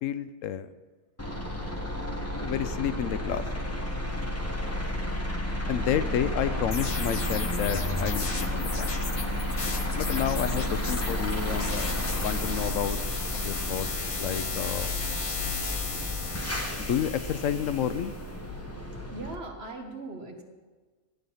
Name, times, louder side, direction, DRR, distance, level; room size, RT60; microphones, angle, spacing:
voice 1, 0.0-0.7 2.3-3.4 5.7-8.9 9.9-13.0 13.4-13.9 14.2-14.9 16.8-18.1, left 9 dB, 80° left, 13 dB, 1.0 m, -30 dB
sound 1, 1.2-19.3, left 1 dB, 10° left, 1.2 m, -32 dB
sound 2, 6.7-18.1, left 4 dB, 35° left, 0.6 m, -36 dB
voice 2, 19.1-20.4, right 2 dB, 55° right, 3 dB, 1.7 m, -39 dB
14.0 x 9.1 x 5.6 m, 1.4 s
omnidirectional pair, 1.3 m